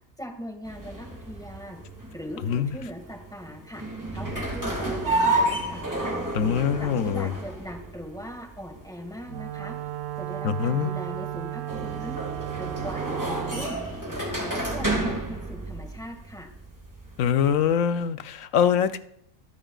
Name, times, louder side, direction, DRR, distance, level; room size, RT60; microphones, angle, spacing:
voice 1, 0.2-1.8 2.1-3.8 4.1-6.2 6.8-9.7 10.2-13.8 14.1-16.5, equal, 5° left, 2 dB, 1.8 m, -40 dB
sound 1, 0.6-17.7, right 1 dB, 15° right, 1.9 m, -31 dB
voice 2, 6.3-7.3 10.4-10.9 17.2-19.0, left 8 dB, 80° left, 11 dB, 1.1 m, -23 dB
Wind instrument woodwind instrument, 9.3-13.8, right 15 dB, 75° right, 0.9 m, -34 dB
23.0 x 8.9 x 2.4 m, 0.72 s
omnidirectional pair, 1.4 m